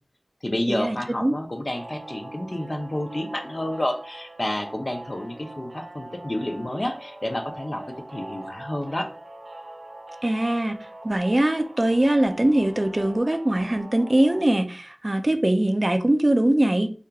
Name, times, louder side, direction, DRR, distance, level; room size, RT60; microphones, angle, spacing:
voice 1, 0.4-7.8 8.1-9.1, left 1 dB, 45° left, 4 dB, 0.4 m, -29 dB
sound 1, 1.7-14.4, right 1 dB, 85° right, 0.6 m, -42 dB
voice 2, 10.2-10.8 11.0-16.9, right 1 dB, 35° right, 7 dB, 0.3 m, -22 dB
2.8 x 2.3 x 2.2 m, 0.38 s
wide cardioid pair, 55°, 0 cm